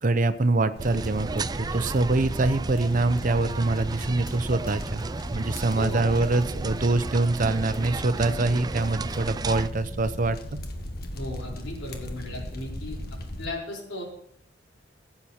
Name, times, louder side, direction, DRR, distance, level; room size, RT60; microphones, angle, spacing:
voice 1, 0.0-5.0 5.3-10.4, right 2 dB, 45° right, 12 dB, 0.7 m, -24 dB
sound 1, 0.7-13.5, equal, 60° left, 1.7 m, -37 dB
sound 2, 0.8-9.7, right 3 dB, 20° right, 0.3 m, -34 dB
voice 2, 5.7-6.0 11.1-13.0 13.4-14.0, left 1 dB, 90° left, -3 dB, 4.9 m, -36 dB
15.5 x 8.7 x 4.4 m, 0.69 s
head